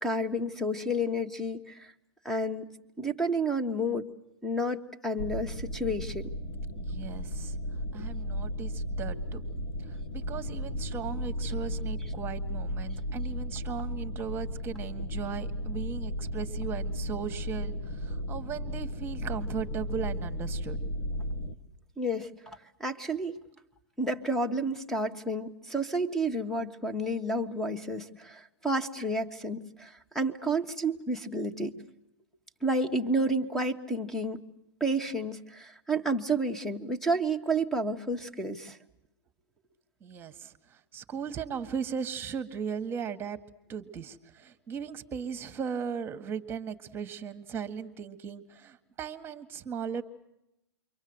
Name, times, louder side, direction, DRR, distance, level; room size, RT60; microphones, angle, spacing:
voice 1, 0.0-1.9 2.2-2.7 3.0-4.1 4.4-6.3 22.0-23.4 24.0-31.8 32.6-34.4 34.8-38.8, right 1 dB, 5° left, 8 dB, 1.6 m, -30 dB
sound 1, 5.2-21.6, equal, 70° left, 2.2 m, -35 dB
voice 2, 6.8-7.5 7.9-9.4 9.8-20.9 40.0-43.4 43.7-50.0, right 7 dB, 15° right, 9 dB, 1.9 m, -37 dB
28.5 x 24.5 x 8.1 m, 0.86 s
hypercardioid pair, 130°, 14 cm